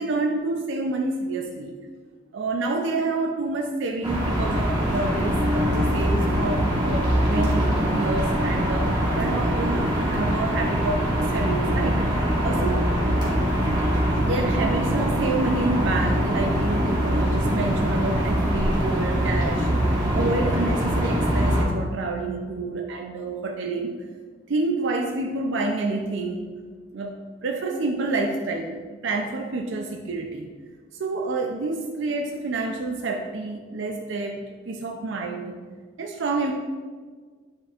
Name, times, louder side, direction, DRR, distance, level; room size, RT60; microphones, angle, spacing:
voice 1, 0.0-1.8 2.3-8.9 9.1-11.1 11.3-12.9 14.1-19.7 20.1-24.1 24.5-26.5 26.9-30.5 31.0-35.6 36.0-36.5, right 3 dB, 70° right, 2 dB, 0.5 m, -28 dB
sound 1, 4.0-21.6, equal, 25° right, 1.3 m, -23 dB
9.5 x 4.2 x 2.4 m, 1.6 s
head